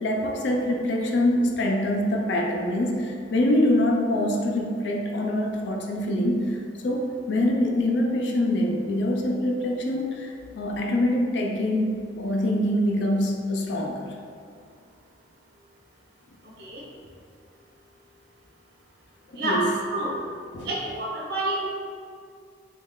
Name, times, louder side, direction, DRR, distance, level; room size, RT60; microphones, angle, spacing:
voice 1, 0.0-14.1 19.3-19.7 20.5-20.7, left 1 dB, 80° left, 1 dB, 0.4 m, -25 dB
voice 2, 19.4-20.2 20.6-21.7, right 1 dB, 60° right, -3 dB, 0.6 m, -28 dB
3.1 x 2.3 x 3.7 m, 2.2 s
head